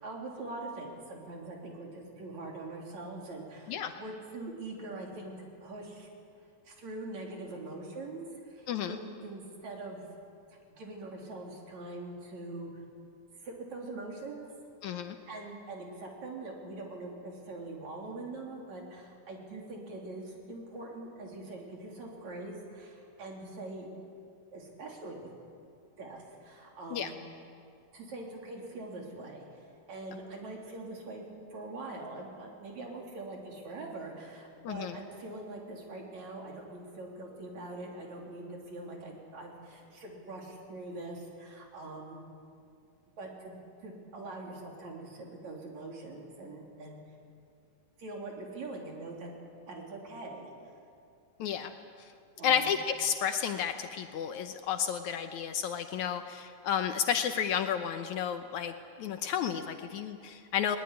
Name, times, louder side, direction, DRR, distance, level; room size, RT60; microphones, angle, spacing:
voice 1, 0.0-6.1 6.6-10.2 10.5-12.8 13.4-14.5 15.3-23.9 24.5-25.3 26.0-27.2 27.9-42.2 43.2-47.0 48.0-49.3 49.7-50.7 52.4-52.7, right 2 dB, 55° right, 0 dB, 4.6 m, -43 dB
voice 2, 8.7-9.0 14.8-15.2 26.9-27.1 34.6-34.9 51.4-51.7 52.4-60.8, left 8 dB, 70° left, 7 dB, 2.1 m, -32 dB
21.0 x 20.0 x 10.0 m, 2.4 s
omnidirectional pair, 3.8 m